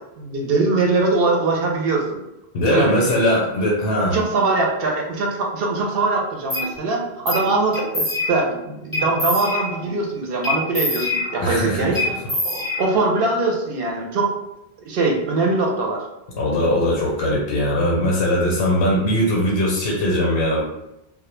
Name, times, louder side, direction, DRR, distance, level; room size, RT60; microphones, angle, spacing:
voice 1, 0.2-2.2 2.7-3.2 4.1-12.1 12.4-14.3 14.8-16.0, right 3 dB, 70° right, 0 dB, 0.7 m, -22 dB
voice 2, 2.5-4.2 11.4-12.0 16.3-20.6, equal, 85° left, -4 dB, 0.8 m, -20 dB
sound 1, 6.5-6.7 7.3-7.5 7.7-8.5 8.9-9.9 10.4-11.6 12.0-13.2, left 2 dB, 25° left, 0.5 m, -25 dB
2.1 x 2.0 x 3.1 m, 0.90 s
omnidirectional pair, 1.1 m